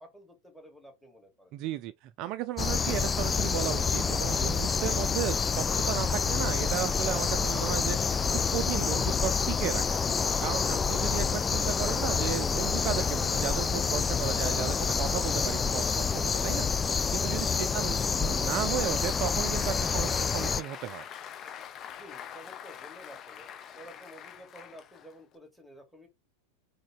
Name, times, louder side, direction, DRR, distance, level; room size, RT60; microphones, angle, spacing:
voice 1, 0.0-1.5 6.9-7.3 17.0-17.6 21.9-23.5 23.7-26.1, equal, 5° left, 2.4 m, -51 dB
voice 2, 1.5-21.0, right 14 dB, 50° right, 0.4 m, -35 dB
sound 1, 2.6-20.6, left 5 dB, 20° left, 0.3 m, -28 dB
sound 2, 2.7-8.2, right 1 dB, 10° right, 1.7 m, -45 dB
Applause, 18.4-25.4, left 9 dB, 35° left, 0.7 m, -44 dB
3.8 x 3.8 x 3.6 m
hypercardioid pair, 95°, 0 cm